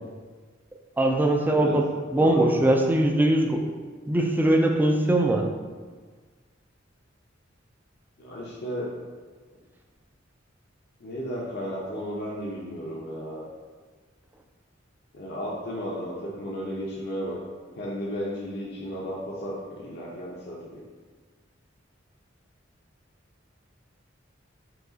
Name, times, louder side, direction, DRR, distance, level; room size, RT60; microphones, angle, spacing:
voice 1, 1.0-1.8 2.1-3.7 4.1-5.5, right 1 dB, 10° right, 2 dB, 0.4 m, -21 dB
voice 2, 2.2-2.5 8.2-8.9 11.0-13.4 15.1-17.4 17.8-20.8, equal, 60° left, -5 dB, 0.6 m, -33 dB
4.7 x 2.4 x 3.8 m, 1.5 s
head